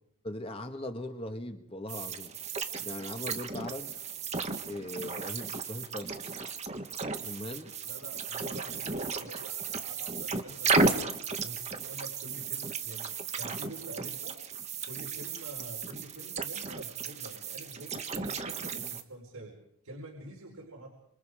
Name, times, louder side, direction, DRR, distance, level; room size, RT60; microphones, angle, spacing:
voice 1, 0.2-2.3 2.8-3.9 4.7-6.2 7.2-7.7, left 1 dB, 25° left, 6 dB, 1.7 m, -39 dB
sound 1, 1.9-19.0, right 4 dB, 30° right, 1.4 m, -34 dB
voice 2, 7.8-11.0 11.4-13.1 13.4-14.4 14.8-19.5 19.8-20.9, right 1 dB, 90° right, -2 dB, 4.7 m, -46 dB
27.5 x 26.0 x 5.0 m, 0.72 s
head